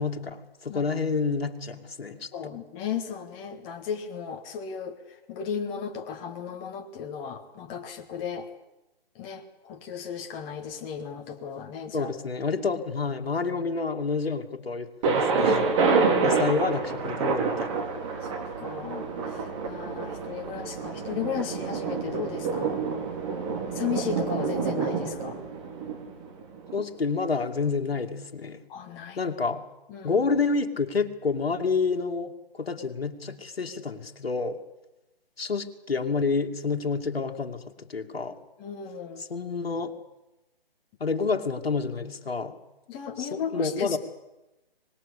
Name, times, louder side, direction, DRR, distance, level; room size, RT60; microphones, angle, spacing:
voice 1, 0.0-2.3 11.9-15.7 16.2-17.8 26.7-28.6 29.2-29.6 30.0-34.6 35.4-37.6 37.9-38.4 39.2-39.9 41.0-42.5 43.2-44.0, left 4 dB, 70° left, 4 dB, 2.4 m, -29 dB
voice 2, 2.3-8.5 9.2-12.1 15.9-16.4 18.2-22.8 23.7-25.4 28.7-29.3 29.9-30.2 38.6-39.2 42.9-44.0, left 7 dB, 15° left, 5 dB, 1.6 m, -35 dB
Thunder, 15.0-26.8, right 4 dB, 30° right, 3.6 m, -28 dB
24.0 x 20.0 x 8.3 m, 0.99 s
figure-of-eight pair, 145°, 30 cm